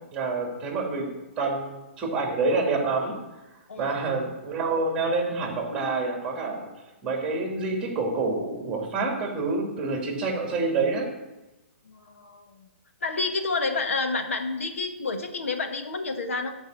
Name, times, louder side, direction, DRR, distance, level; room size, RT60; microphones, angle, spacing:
voice 1, 0.1-3.2 3.8-6.7 7.0-11.1, right 3 dB, 15° right, 1 dB, 2.8 m, -27 dB
voice 2, 11.8-12.7 13.0-16.6, left 3 dB, 90° left, 6 dB, 1.6 m, -29 dB
12.0 x 5.3 x 7.8 m, 1.0 s
hypercardioid pair, 155°, 7 cm